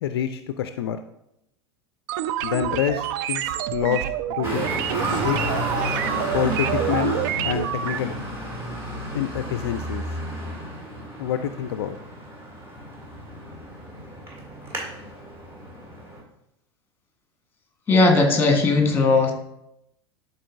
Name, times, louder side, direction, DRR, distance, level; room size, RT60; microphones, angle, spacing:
voice 1, 0.0-1.0 2.4-4.1 4.4-4.7 5.2-5.4 6.3-7.1 7.4-8.1 9.1-10.0 11.2-12.0, left 10 dB, 60° left, 9 dB, 0.4 m, -26 dB
sound 1, 2.1-8.0, right 11 dB, 50° right, 0.4 m, -27 dB
Traffic noise roadway noise, 4.4-16.2, equal, 20° right, 1.9 m, -32 dB
voice 2, 17.9-19.3, left 3 dB, 15° left, 3 dB, 1.5 m, -18 dB
11.0 x 4.1 x 2.6 m, 0.79 s
figure-of-eight pair, 85°, 14 cm